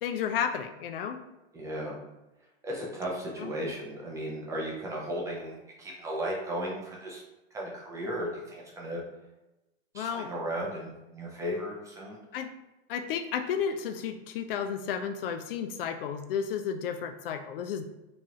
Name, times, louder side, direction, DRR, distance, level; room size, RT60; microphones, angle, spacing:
voice 1, 0.0-1.2 3.4-3.5 9.9-10.3 12.3-12.5 12.9-17.8, left 7 dB, 60° left, 8 dB, 0.5 m, -32 dB
voice 2, 1.5-2.0 2.6-7.2 7.5-9.0 9.9-12.2, equal, 10° right, -3 dB, 0.5 m, -35 dB
3.5 x 3.0 x 3.0 m, 0.99 s
hypercardioid pair, 145°, 32 cm